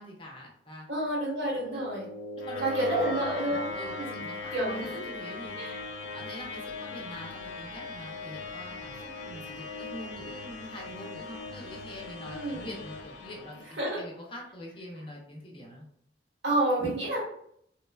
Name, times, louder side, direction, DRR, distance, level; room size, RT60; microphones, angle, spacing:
voice 1, 0.0-0.9 1.6-1.8 2.3-5.6 6.1-15.9, left 1 dB, 30° left, -2 dB, 0.6 m, -44 dB
voice 2, 0.9-2.1 2.6-4.2 4.5-5.1 5.6-5.8 12.3-12.7 13.8-14.0 16.4-17.2, right 1 dB, 70° right, -6 dB, 1.3 m, -29 dB
sound 1, 1.1-14.1, left 3 dB, 75° left, 0.4 m, -40 dB
3.0 x 2.1 x 2.3 m, 0.70 s
head